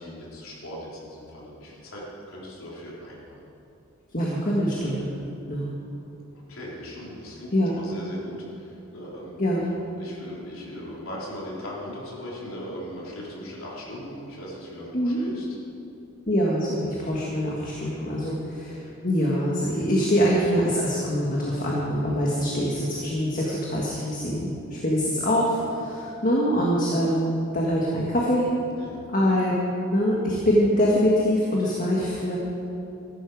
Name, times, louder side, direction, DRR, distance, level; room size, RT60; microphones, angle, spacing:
voice 1, 0.0-3.4 6.3-9.4 10.0-15.5 17.9-18.1 25.6-25.7 28.8-29.1, left 1 dB, 85° left, -5 dB, 3.6 m, -39 dB
voice 2, 4.1-5.1 5.5-5.7 7.5-7.7 9.4-9.7 14.9-15.2 16.3-28.5 29.1-29.5 29.9-32.4, equal, 40° left, -4 dB, 1.7 m, -24 dB
14.5 x 12.0 x 4.8 m, 2.8 s
head